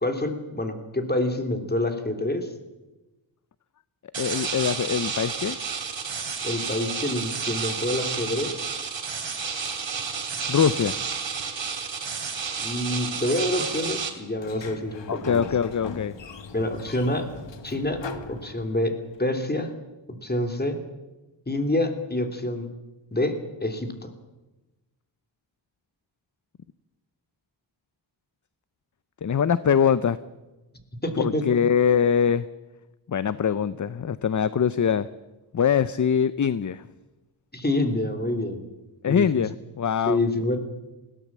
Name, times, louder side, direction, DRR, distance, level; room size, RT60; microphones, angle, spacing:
voice 1, 0.0-2.5 6.4-8.6 12.6-15.5 16.5-17.3 17.6-18.0 18.3-19.7 20.2-20.8 21.5-22.7 23.1-24.1 31.0-31.4 37.5-38.6 39.1-39.4 40.1-40.6, left 1 dB, 20° left, 6 dB, 3.1 m, -27 dB
sound 1, 4.1-14.1, right 6 dB, 70° right, 2.7 m, -31 dB
voice 2, 4.2-5.6 10.5-11.0 15.1-16.1 29.2-30.2 31.2-32.5 33.1-35.1 35.5-36.8 39.0-40.2, left 7 dB, 40° left, 16 dB, 0.6 m, -23 dB
Sliding door, 14.4-19.1, left 5 dB, 65° left, 1.5 m, -40 dB
20.5 x 17.0 x 7.4 m, 1.1 s
wide cardioid pair, 80°, 46 cm